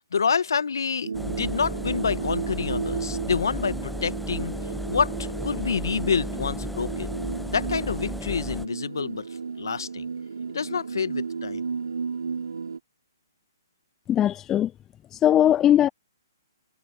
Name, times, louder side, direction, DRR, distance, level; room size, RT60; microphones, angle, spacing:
voice 1, 0.0-4.5 4.9-7.1 7.5-9.2 9.6-10.0 10.5-11.6, left 6 dB, 70° left, 1.6 m, -27 dB
sound 1, 1.0-12.8, right 5 dB, 75° right, 5.4 m, -33 dB
Engine, 1.1-8.7, left 1 dB, ahead, 1.3 m, -34 dB
voice 2, 14.1-14.7 15.2-15.9, left 11 dB, 15° left, 0.4 m, -19 dB
figure-of-eight pair, 130°, 2 cm